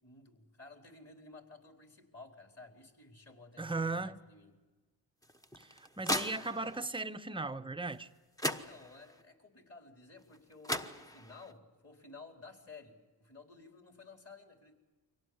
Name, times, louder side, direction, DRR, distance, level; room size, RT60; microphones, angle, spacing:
voice 1, 0.0-4.5 8.4-14.7, left 3 dB, 30° left, 4.1 m, -54 dB
voice 2, 3.6-4.2 5.6-8.1, right 3 dB, 10° right, 0.8 m, -37 dB
sound 1, 5.2-6.9 8.0-8.1 8.4-9.2 10.3-10.4 10.6-11.5, equal, 10° left, 1.1 m, -37 dB
24.5 x 17.5 x 9.7 m
cardioid pair, 75°, 44 cm